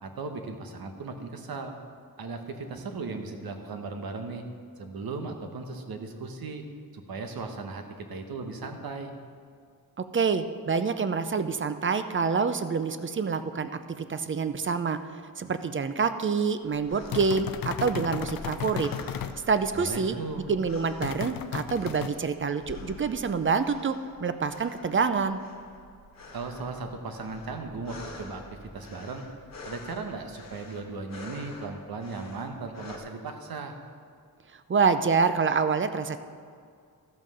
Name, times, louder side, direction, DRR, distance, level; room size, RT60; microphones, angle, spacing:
voice 1, 0.0-1.8 2.2-4.4 4.8-6.6 6.9-9.1 19.7-20.5 26.3-29.2 29.6-33.7, right 3 dB, 70° right, 5 dB, 1.2 m, -37 dB
voice 2, 10.0-13.7 14.0-15.0 15.4-18.9 19.5-20.2 20.5-25.4 34.7-36.2, right 5 dB, 35° right, 11 dB, 0.5 m, -27 dB
sound 1, 16.8-33.0, left 2 dB, 45° left, 1.6 m, -47 dB
sound 2, 17.1-19.4 21.0-22.1, left 9 dB, 65° left, 0.6 m, -34 dB
13.5 x 5.6 x 6.4 m, 2.3 s
wide cardioid pair, 130°, 37 cm